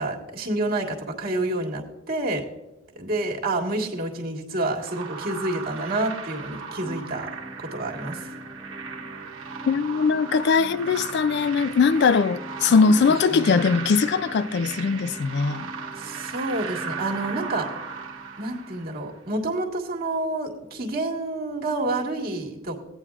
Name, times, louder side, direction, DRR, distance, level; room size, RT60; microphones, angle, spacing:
voice 1, 0.0-2.4 2.9-7.3 7.6-8.3 12.7-13.6 15.9-17.7 18.4-22.8, right 2 dB, 50° right, 1.7 m, -29 dB
sound 1, 4.8-19.2, right 6 dB, 70° right, 1.0 m, -37 dB
sound 2, 6.8-18.8, equal, 15° right, 1.1 m, -42 dB
voice 2, 9.7-15.7, left 5 dB, 55° left, 0.3 m, -21 dB
16.5 x 9.2 x 2.4 m
head